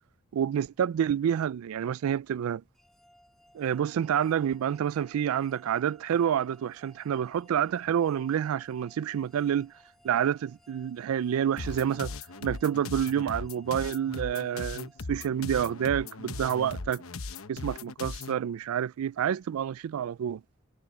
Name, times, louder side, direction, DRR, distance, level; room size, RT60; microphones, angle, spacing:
voice 1, 0.3-2.6 3.5-9.7 10.0-12.1 12.4-17.0 17.5-20.4, right 9 dB, 80° right, 0.3 m, -28 dB
sound 1, 2.8-15.7, equal, ahead, 5.2 m, -61 dB
sound 2, 11.6-18.4, left 3 dB, 75° left, 0.9 m, -39 dB
head